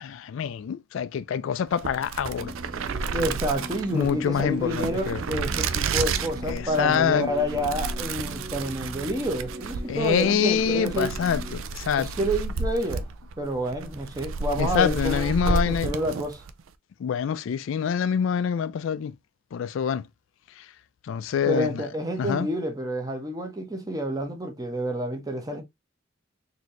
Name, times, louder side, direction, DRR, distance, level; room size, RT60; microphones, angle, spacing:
voice 1, 0.0-2.5 3.9-5.2 6.5-7.3 9.9-12.1 14.6-15.9 17.0-19.1 19.5-20.0 21.1-21.7 22.2-22.5, left 7 dB, 70° left, 0.3 m, -25 dB
sound 1, 1.7-16.6, right 4 dB, 85° right, 0.5 m, -31 dB
sound 2, 2.4-11.6, equal, 55° right, 1.1 m, -41 dB
voice 2, 3.1-11.2 12.0-13.1 13.4-16.4 21.3-25.6, right 1 dB, 20° right, 0.9 m, -29 dB
4.1 x 2.7 x 3.0 m
head